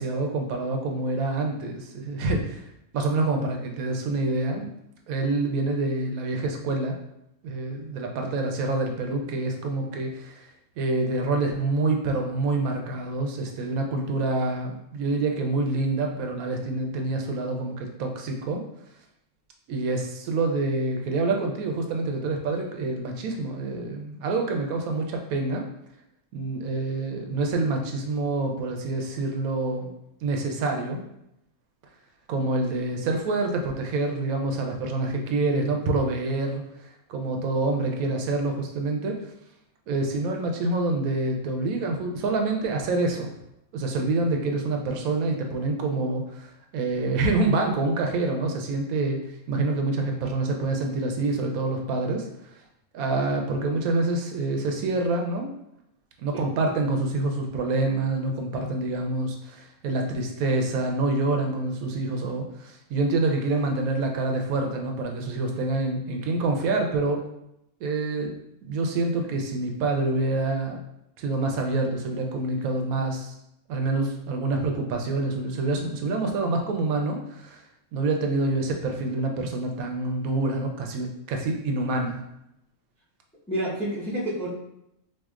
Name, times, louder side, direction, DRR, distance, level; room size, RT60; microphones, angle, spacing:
voice 1, 0.0-2.6 2.9-4.7 5.1-7.0 7.4-10.5 10.8-18.6 19.7-25.7 26.3-29.9 30.2-31.0 32.3-39.2 39.9-43.3 43.7-49.2 49.5-52.3 52.9-55.5 56.2-67.2 67.8-68.3 68.6-70.8 71.2-73.3 73.7-77.6 77.9-82.2, right 2 dB, 80° right, 3 dB, 1.0 m, -27 dB
voice 2, 83.5-84.5, right 1 dB, 5° left, -8 dB, 0.7 m, -29 dB
4.5 x 2.4 x 2.4 m, 0.81 s
omnidirectional pair, 1.5 m